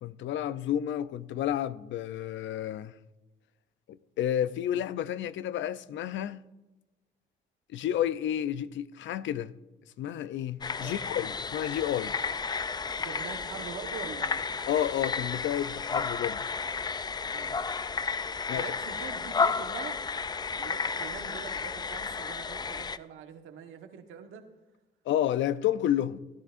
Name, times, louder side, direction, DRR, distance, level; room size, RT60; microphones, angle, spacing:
voice 1, 0.0-2.9 3.9-6.4 7.7-9.5 10.0-12.2 14.7-16.5 18.5-18.6 25.1-26.2, left 11 dB, 70° left, 0.5 m, -30 dB
sound 1, 10.6-23.0, left 5 dB, 20° left, 0.4 m, -32 dB
voice 2, 13.0-14.4 17.3-17.6 18.5-20.0 20.5-24.4, right 7 dB, 85° right, 1.2 m, -44 dB
16.5 x 11.0 x 2.5 m
cardioid pair, 90°, 20 cm